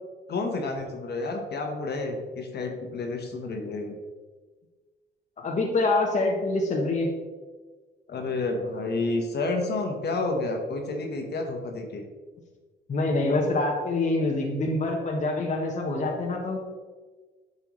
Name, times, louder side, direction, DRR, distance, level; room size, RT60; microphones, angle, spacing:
voice 1, 0.3-3.9 8.1-12.0, left 3 dB, 55° left, 3 dB, 1.3 m, -30 dB
voice 2, 5.4-7.1 12.9-16.6, left 2 dB, 40° left, 0 dB, 1.1 m, -25 dB
8.0 x 5.5 x 3.2 m, 1.3 s
cardioid pair, 90°, 20 cm